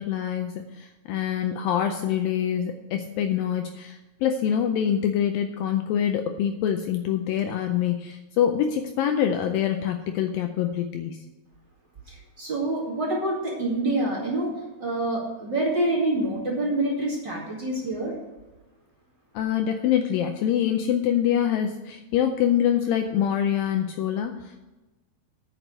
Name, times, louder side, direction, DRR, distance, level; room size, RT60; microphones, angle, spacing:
voice 1, 0.0-11.3 19.4-24.6, left 9 dB, 80° left, 6 dB, 2.1 m, -25 dB
voice 2, 12.1-14.5 14.8-18.1, right 2 dB, 35° right, -5 dB, 2.3 m, -26 dB
9.1 x 6.2 x 7.9 m, 1.1 s
omnidirectional pair, 4.5 m